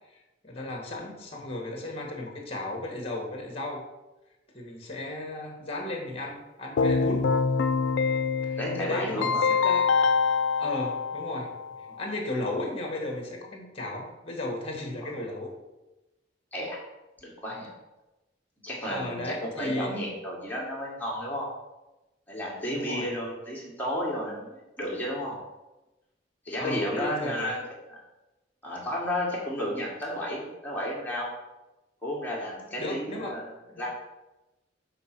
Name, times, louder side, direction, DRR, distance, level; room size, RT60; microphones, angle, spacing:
voice 1, 0.1-3.8 4.5-7.3 8.4-9.8 10.6-11.5 12.0-15.5 18.9-19.9 22.7-23.2 26.5-27.5 32.8-33.4 33.7-33.8, left 2 dB, 30° left, 0 dB, 1.4 m, -35 dB
Keyboard (musical), 6.8-11.7, left 5 dB, 75° left, 0.4 m, -25 dB
voice 2, 8.6-9.4 11.9-12.0 15.0-15.1 16.5-16.8 17.2-17.7 18.6-21.5 22.3-25.4 26.5-27.6 27.9-28.0 28.6-31.3 32.0-33.5 33.8-33.9, equal, 10° left, -4 dB, 1.7 m, -32 dB
5.9 x 3.8 x 5.9 m, 1.0 s
head